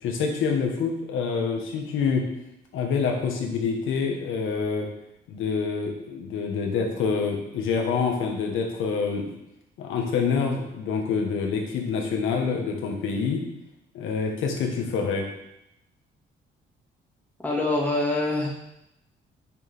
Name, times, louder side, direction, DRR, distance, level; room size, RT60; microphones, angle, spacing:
voice 1, 0.0-2.3 2.7-4.9 5.3-9.3 9.8-13.4 13.9-15.3, left 5 dB, 85° left, 2 dB, 1.7 m, -26 dB
voice 2, 17.4-18.5, left 2 dB, 10° left, -4 dB, 2.3 m, -24 dB
8.6 x 6.4 x 3.7 m, 0.83 s
cardioid pair, 90°, 20 cm